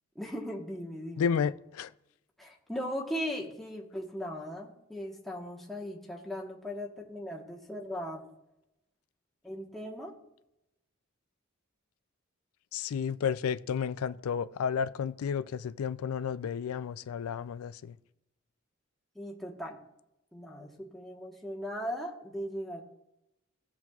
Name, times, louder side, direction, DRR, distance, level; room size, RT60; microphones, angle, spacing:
voice 1, 0.1-1.3 2.4-8.3 9.4-10.1 19.1-19.8 20.3-22.8, equal, ahead, 1.1 m, -38 dB
voice 2, 1.2-1.9 12.7-18.0, left 7 dB, 80° left, 0.3 m, -32 dB
16.0 x 7.3 x 2.4 m
head